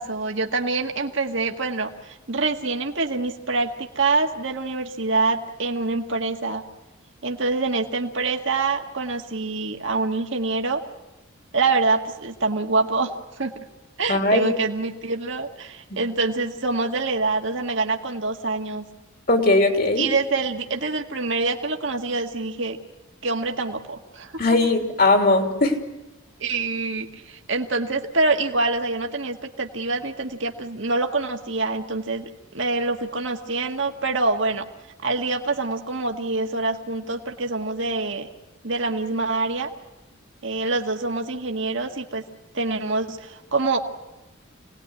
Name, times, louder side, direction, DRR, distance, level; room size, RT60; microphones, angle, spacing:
voice 1, 0.0-6.6 7.2-10.8 11.5-13.1 13.4-13.5 14.0-18.8 20.0-22.8 23.2-24.3 26.4-32.3 32.5-34.7 35.0-38.3 38.6-39.7 40.4-42.2 42.5-43.8, right 3 dB, 60° right, 3 dB, 1.8 m, -25 dB
voice 2, 14.1-14.5 15.9-16.0 19.3-20.1 24.4-25.8, left 2 dB, 45° left, 4 dB, 3.3 m, -19 dB
27.0 x 19.5 x 9.7 m, 1.0 s
head